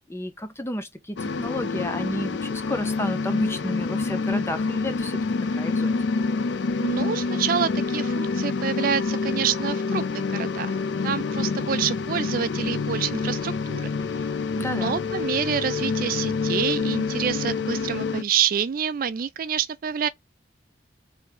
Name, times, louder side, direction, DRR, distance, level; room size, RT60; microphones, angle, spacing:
voice 1, 0.0-5.2 5.6-5.9 14.5-15.0, left 1 dB, 15° left, 0.8 m, -31 dB
sound 1, 1.2-18.2, left 4 dB, 85° left, 0.4 m, -27 dB
voice 2, 6.8-10.8 11.0-13.9 14.2-14.3 14.6-20.1, right 8 dB, 50° right, 0.4 m, -27 dB
3.5 x 3.4 x 4.5 m
head